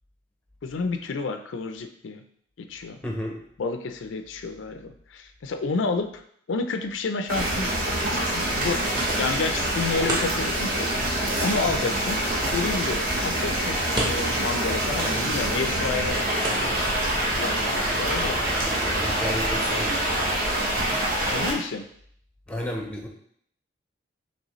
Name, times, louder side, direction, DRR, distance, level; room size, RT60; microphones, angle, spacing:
voice 1, 0.6-2.2 2.6-3.0 3.6-6.2 6.5-7.7 8.3-12.2 12.5-17.0 17.3-18.4 21.3-21.8, left 4 dB, 85° left, 7 dB, 0.4 m, -30 dB
voice 2, 3.0-3.4 18.8-20.2 22.5-23.1, equal, 5° left, 1 dB, 0.6 m, -32 dB
sound 1, 7.3-21.5, right 1 dB, 50° right, 1.1 m, -25 dB
sound 2, 8.4-19.3, right 1 dB, 20° right, 0.9 m, -38 dB
5.3 x 3.2 x 3.0 m, 0.65 s
head